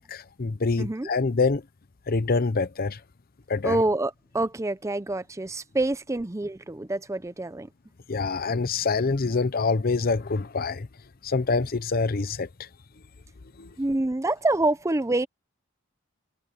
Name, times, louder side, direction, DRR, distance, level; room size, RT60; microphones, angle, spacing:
voice 1, 0.0-1.6 2.1-3.0 3.5-3.8 8.1-10.9 11.2-12.7 13.6-13.7, left 4 dB, 45° left, 0.7 m, -26 dB
voice 2, 0.8-1.1 3.6-7.7 13.8-15.3, right 2 dB, 15° right, 0.6 m, -26 dB
head